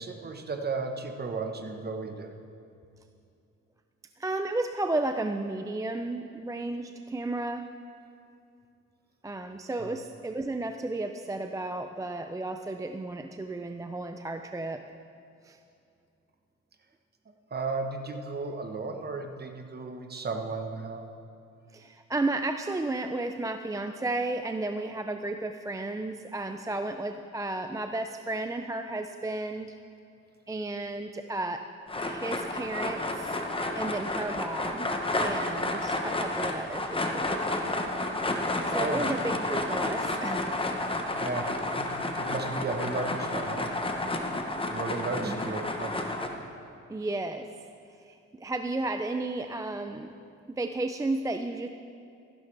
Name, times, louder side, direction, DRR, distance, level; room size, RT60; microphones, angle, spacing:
voice 1, 0.0-2.4 9.8-10.0 17.5-21.1 38.8-39.1 41.1-43.7 44.7-46.0, right 3 dB, 35° right, 5 dB, 1.1 m, -34 dB
voice 2, 4.2-7.7 9.2-14.8 15.4-15.6 21.7-29.8 30.5-33.4 33.7-34.9 35.2-37.4 38.7-40.5 45.2-45.4 46.9-47.5 48.0-50.1 50.5-51.7, right 2 dB, 10° right, 7 dB, 0.4 m, -33 dB
sound 1, 31.9-46.3, left 2 dB, 20° left, 1.0 m, -31 dB
14.5 x 11.5 x 3.3 m, 2.6 s
cardioid pair, 90°, 30 cm